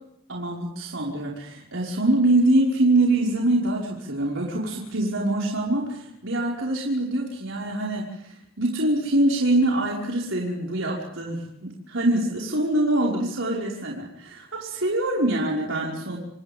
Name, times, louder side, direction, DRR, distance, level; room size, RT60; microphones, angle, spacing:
voice 1, 0.3-16.2, right 1 dB, 65° right, -3 dB, 5.6 m, -24 dB
29.5 x 27.5 x 3.7 m, 0.77 s
head